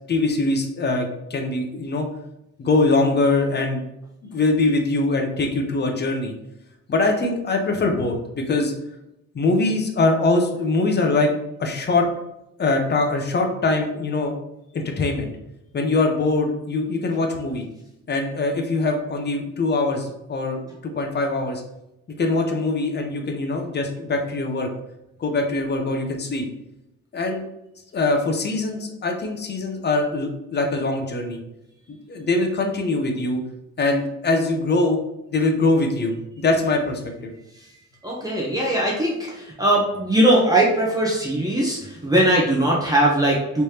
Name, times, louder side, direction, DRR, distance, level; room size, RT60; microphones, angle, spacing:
voice 1, 0.1-2.1 2.6-3.8 4.2-6.3 6.9-8.7 9.3-11.3 11.6-12.1 12.6-14.3 14.7-15.3 15.7-17.6 18.1-21.6 22.2-24.7 25.2-26.4 27.1-27.4 27.9-31.4 31.9-33.4 33.8-35.0 35.3-37.3, left 2 dB, 35° left, 3 dB, 0.7 m, -22 dB
voice 2, 38.0-43.6, right 1 dB, 10° right, -4 dB, 0.8 m, -20 dB
3.3 x 3.1 x 2.8 m, 0.88 s
cardioid pair, 90°, 30 cm